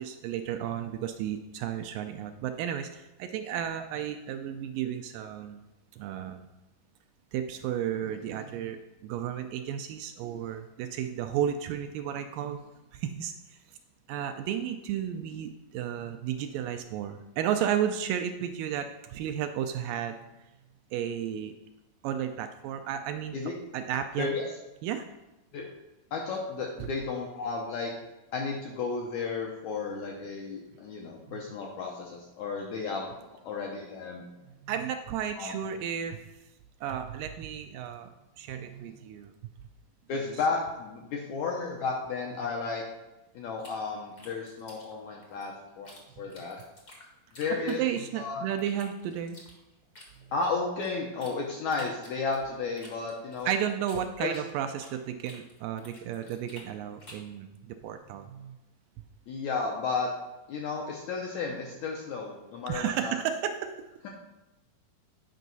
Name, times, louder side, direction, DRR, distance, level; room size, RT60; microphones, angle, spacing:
voice 1, 0.0-5.6 5.9-6.5 7.3-12.6 12.9-13.6 14.1-20.2 20.9-21.5 22.0-23.4 23.7-24.3 24.8-25.1 26.8-26.9 31.3-31.4 34.4-36.3 36.8-38.1 38.4-39.3 46.2-46.3 47.7-49.4 53.5-58.6 62.7-63.7, right 9 dB, 80° right, 7 dB, 2.1 m, -33 dB
voice 2, 24.2-24.5 25.5-25.6 26.1-27.9 28.3-33.1 33.4-34.2 35.4-35.6 40.1-42.8 43.3-46.6 47.4-47.8 48.2-48.5 50.3-53.5 54.2-54.4 59.3-60.1 60.5-63.1, left 4 dB, 75° left, -1 dB, 1.8 m, -33 dB
sound 1, 43.6-46.0 46.3-48.2 48.6-51.3 51.7-55.0 55.2-57.3, left 1 dB, 50° left, 0.9 m, -52 dB
9.3 x 5.4 x 4.0 m, 0.98 s
omnidirectional pair, 4.2 m